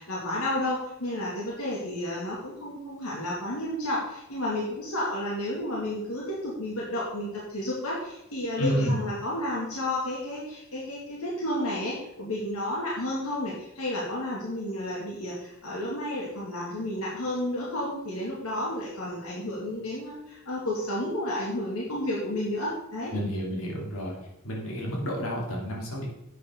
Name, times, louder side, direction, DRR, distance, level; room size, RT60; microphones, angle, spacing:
voice 1, 0.0-23.1, left 1 dB, 85° left, -5 dB, 2.5 m, -31 dB
voice 2, 8.6-9.0 23.1-24.2 24.4-26.1, equal, 65° left, -3 dB, 3.2 m, -30 dB
11.0 x 8.3 x 3.9 m, 0.84 s
head